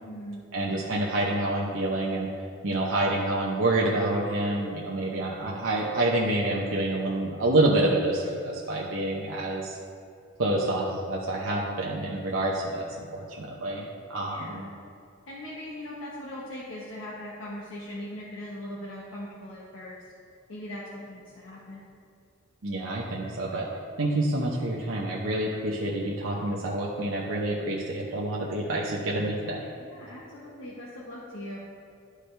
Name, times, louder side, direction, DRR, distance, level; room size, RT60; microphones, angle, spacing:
voice 1, 0.0-0.4 14.2-14.8 15.3-20.0 20.5-21.8 29.8-31.6, left 1 dB, 75° left, -7 dB, 1.2 m, -40 dB
voice 2, 0.5-2.3 2.6-9.8 10.4-14.6 22.6-23.7 24.0-29.7, right 1 dB, 75° right, -4 dB, 0.8 m, -27 dB
11.5 x 4.9 x 3.3 m, 2.4 s
head